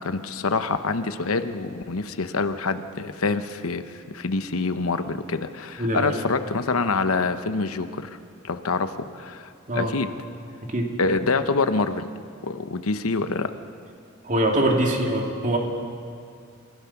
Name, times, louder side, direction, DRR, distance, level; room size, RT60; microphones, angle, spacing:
voice 1, 0.0-8.1 8.4-10.1 11.0-12.1 12.4-13.5, left 3 dB, 90° left, 10 dB, 0.9 m, -26 dB
voice 2, 5.8-6.1 9.7-9.9 10.7-10.9 14.2-15.6, right 1 dB, 40° right, 1 dB, 2.8 m, -23 dB
30.0 x 16.0 x 5.9 m, 2.3 s
head